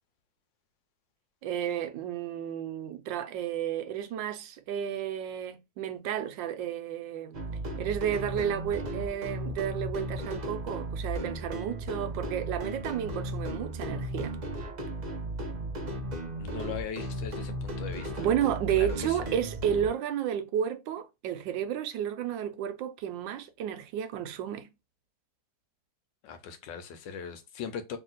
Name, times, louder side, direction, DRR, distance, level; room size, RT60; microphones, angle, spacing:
voice 1, 1.4-7.4 7.8-14.4 18.2-24.7, right 9 dB, 85° right, 1.3 m, -32 dB
sound 1, 7.3-19.9, right 1 dB, 70° right, 0.4 m, -35 dB
voice 2, 16.4-18.3 18.7-19.3 26.2-28.0, left 6 dB, 90° left, 1.4 m, -39 dB
3.2 x 2.9 x 3.8 m
omnidirectional pair, 2.0 m